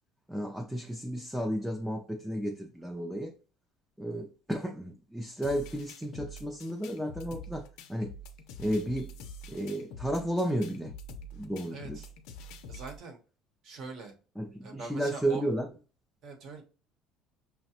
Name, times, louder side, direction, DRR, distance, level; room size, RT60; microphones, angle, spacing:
voice 1, 0.3-3.3 4.0-8.1 8.6-9.1 9.5-10.9 11.3-12.0 14.4-15.7, right 1 dB, ahead, 1 dB, 0.4 m, -33 dB
sound 1, 5.4-13.0, left 1 dB, 70° left, 0.5 m, -46 dB
voice 2, 11.7-12.0 12.7-13.2 13.6-14.1 14.6-15.5 16.2-16.6, right 3 dB, 50° right, 4 dB, 0.9 m, -43 dB
5.6 x 2.1 x 2.8 m, 0.36 s
cardioid pair, 160°, 0 cm